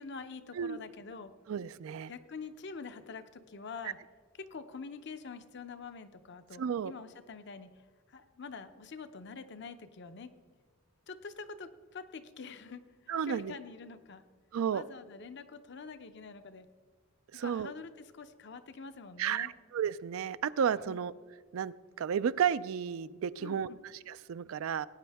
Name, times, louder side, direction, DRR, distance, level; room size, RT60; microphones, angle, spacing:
voice 1, 0.0-1.3 2.1-4.0 4.4-7.7 8.1-10.3 11.1-14.2 14.7-16.7 17.3-19.5 20.8-21.0 23.4-23.8, left 4 dB, 50° left, 10 dB, 0.7 m, -46 dB
voice 2, 1.5-2.1 6.6-6.9 13.1-13.6 14.5-14.8 17.3-17.7 19.2-21.1 21.5-24.9, right 8 dB, 70° right, 17 dB, 0.3 m, -33 dB
17.0 x 9.3 x 3.5 m, 1.5 s
head